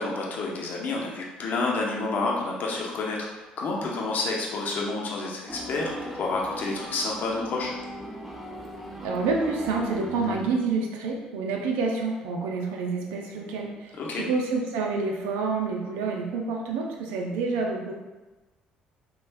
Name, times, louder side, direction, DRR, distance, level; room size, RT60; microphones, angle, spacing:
voice 1, 0.0-7.7 13.9-14.3, left 3 dB, 55° left, -2 dB, 0.8 m, -29 dB
sound 1, 5.5-10.5, equal, ahead, 0.8 m, -38 dB
voice 2, 9.0-17.9, right 4 dB, 75° right, 0 dB, 0.6 m, -28 dB
5.2 x 2.4 x 2.2 m, 1.2 s
hypercardioid pair, 55°, 4 cm